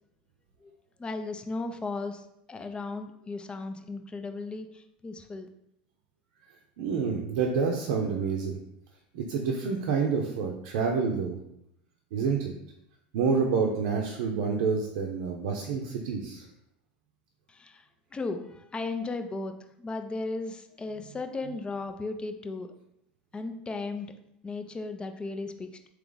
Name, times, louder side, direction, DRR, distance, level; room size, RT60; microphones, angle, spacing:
voice 1, 1.0-5.5 17.5-17.8 18.1-19.5 19.8-22.7 23.3-24.1 24.4-25.9, left 3 dB, 20° left, 7 dB, 0.5 m, -36 dB
voice 2, 6.8-8.6 9.1-11.3 12.1-12.5 13.1-16.4, right 5 dB, 70° right, 0 dB, 0.6 m, -28 dB
3.4 x 2.9 x 3.9 m, 0.79 s
hypercardioid pair, 95°, 5 cm